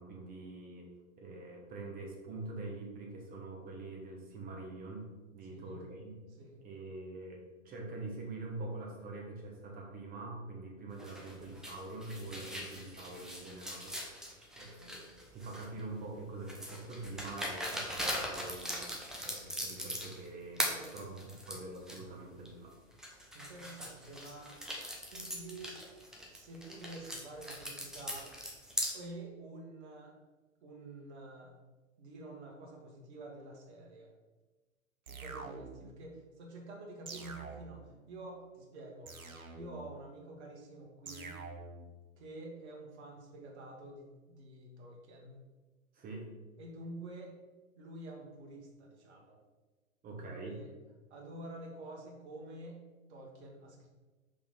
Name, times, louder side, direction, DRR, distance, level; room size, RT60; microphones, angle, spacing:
voice 1, 0.0-5.1 5.3-6.2 6.6-14.3 14.6-22.7 45.9-46.3 50.0-50.6, right 2 dB, 20° right, 0 dB, 1.3 m, -45 dB
voice 2, 5.4-5.8 6.4-6.6 20.5-21.3 23.3-24.6 25.1-25.8 26.3-28.3 28.9-30.2 30.6-31.5 32.0-34.1 35.1-39.1 39.5-41.4 42.2-45.4 46.6-47.4 47.8-49.4 50.2-50.7 51.1-53.9, right 2 dB, 55° right, 1 dB, 1.6 m, -48 dB
sound 1, 11.0-15.8 16.5-20.3 20.6-22.0 22.5-22.6 23.0-28.9, equal, ahead, 0.5 m, -40 dB
sound 2, 35.1-36.0 37.1-38.0 39.1-40.0 41.1-41.9, right 4 dB, 90° right, 0.8 m, -46 dB
5.1 x 3.8 x 5.4 m, 1.2 s
figure-of-eight pair, 105°, 41 cm